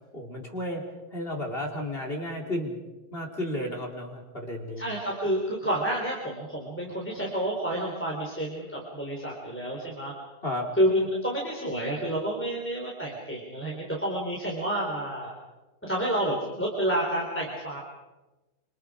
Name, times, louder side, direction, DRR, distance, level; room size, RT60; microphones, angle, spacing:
voice 1, 0.1-0.8 1.1-2.8 3.1-4.8 10.4-10.7, left 1 dB, 35° left, 0 dB, 3.7 m, -33 dB
voice 2, 4.8-10.1 10.8-15.3 15.8-17.8, right 1 dB, 5° left, -2 dB, 4.0 m, -29 dB
27.0 x 27.0 x 5.0 m, 1.1 s
omnidirectional pair, 1.8 m